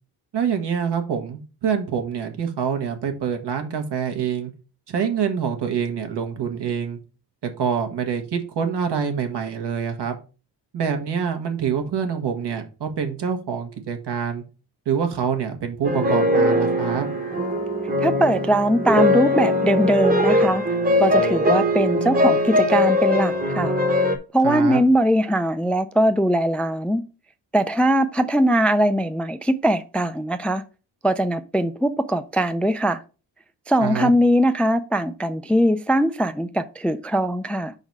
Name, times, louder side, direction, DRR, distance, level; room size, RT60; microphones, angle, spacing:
voice 1, 0.3-4.5 4.9-7.0 7.4-10.2 10.7-14.4 14.8-17.1 24.4-24.8 33.8-34.1, right 7 dB, 75° right, 1.4 m, -26 dB
sound 1, 15.8-24.2, left 1 dB, 20° right, 1.0 m, -21 dB
voice 2, 18.0-20.6 21.0-23.8 24.3-27.0 27.5-30.6 31.0-33.0 33.7-37.7, right 1 dB, 5° left, 0.3 m, -21 dB
5.3 x 4.0 x 5.9 m
wide cardioid pair, 130°, 42 cm